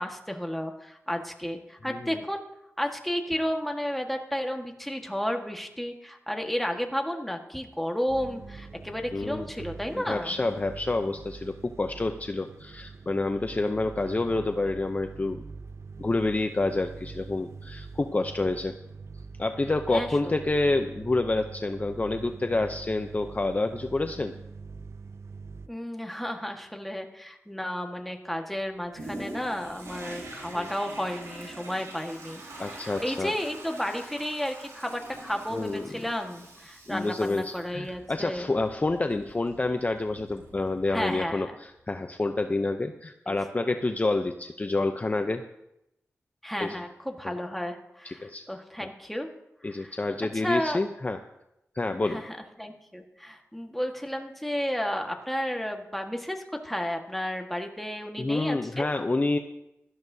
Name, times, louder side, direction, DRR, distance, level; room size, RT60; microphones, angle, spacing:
voice 1, 0.0-2.4 2.8-10.3 19.9-20.1 20.7-20.9 25.7-38.5 40.9-41.6 43.3-43.4 46.4-49.3 49.6-49.9 50.3-50.8 52.0-58.9, equal, 5° left, 3 dB, 1.5 m, -32 dB
sound 1, 8.1-25.7, right 4 dB, 65° right, 0.6 m, -44 dB
voice 2, 9.1-9.5 9.9-15.4 16.0-18.7 19.4-24.3 30.6-30.7 32.6-33.3 35.5-35.9 36.9-45.4 46.6-46.8 47.2-47.3 48.0-48.4 49.6-51.2 51.8-52.2 58.2-59.4, left 2 dB, 30° left, 7 dB, 0.6 m, -28 dB
Toilet flush, 28.9-41.4 41.9-42.0, right 1 dB, 90° right, 4.9 m, -45 dB
17.0 x 13.0 x 2.7 m, 0.86 s
wide cardioid pair, 70°, 5 cm